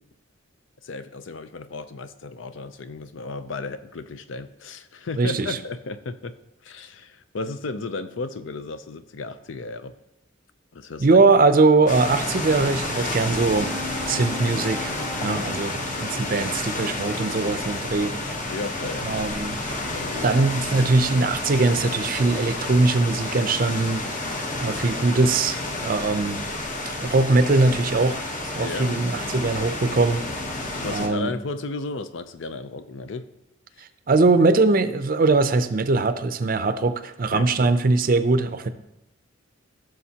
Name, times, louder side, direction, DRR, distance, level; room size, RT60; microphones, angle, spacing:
voice 1, 0.8-6.4 6.6-10.0 10.7-11.2 15.3-15.6 18.5-19.2 19.9-20.3 28.6-28.9 30.8-33.3 33.8-33.9 37.3-37.5, left 3 dB, 70° left, 0.6 m, -34 dB
voice 2, 5.2-5.6 11.0-13.7 14.1-14.9 15.2-18.2 19.0-19.6 20.2-24.0 24.6-26.4 27.0-28.2 28.5-30.2 30.8-31.3 34.1-38.7, right 3 dB, 45° right, 0.5 m, -21 dB
sound 1, 11.9-31.1, left 2 dB, 40° left, 1.0 m, -30 dB
sound 2, 13.6-18.5, left 2 dB, 20° left, 1.4 m, -39 dB
15.5 x 6.4 x 2.8 m
head